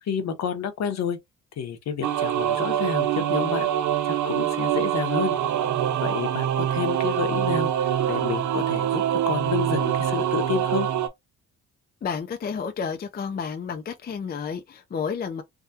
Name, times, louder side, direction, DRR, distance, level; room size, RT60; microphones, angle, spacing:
voice 1, 0.0-1.2 1.6-3.7 4.0-5.4 5.9-10.9, left 7 dB, 60° left, 0.9 m, -30 dB
sound 1, 2.0-11.1, right 10 dB, 70° right, 0.7 m, -24 dB
voice 2, 12.0-15.4, left 6 dB, 30° left, 0.5 m, -31 dB
3.5 x 2.2 x 2.7 m
cardioid pair, 90°, 30 cm